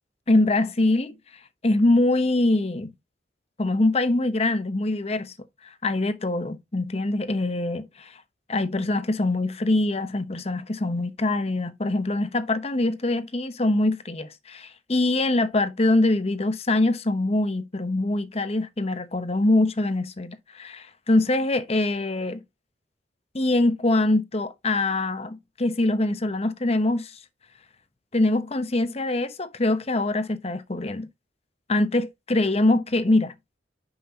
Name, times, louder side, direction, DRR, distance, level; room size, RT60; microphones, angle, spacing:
voice 1, 0.3-1.2 1.6-2.9 3.6-5.3 5.6-8.1 8.5-22.4 23.3-27.1 28.1-31.1 31.7-33.3, left 2 dB, 35° left, 0.9 m, -23 dB
10.0 x 5.8 x 2.8 m
head